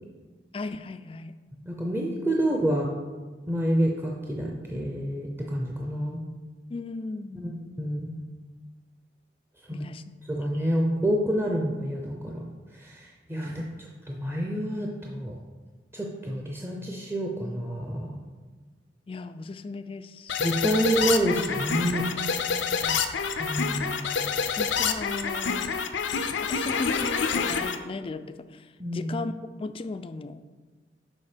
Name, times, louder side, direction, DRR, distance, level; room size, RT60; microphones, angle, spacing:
voice 1, 0.5-1.4 6.7-7.6 9.7-10.2 13.4-13.8 19.1-20.4 22.6-23.1 24.5-25.8 26.4-28.7 28.9-29.3 29.6-30.5, left 3 dB, 30° left, 12 dB, 0.3 m, -36 dB
voice 2, 1.6-2.9 3.5-6.2 7.3-8.2 9.7-9.8 10.3-12.4 12.7-15.3 15.9-18.3 20.4-22.0 23.4-24.0 28.8-29.1, right 1 dB, 15° right, -1 dB, 0.6 m, -28 dB
sound 1, 20.3-27.8, left 6 dB, 80° left, 0.6 m, -27 dB
7.1 x 5.1 x 5.0 m, 1.3 s
head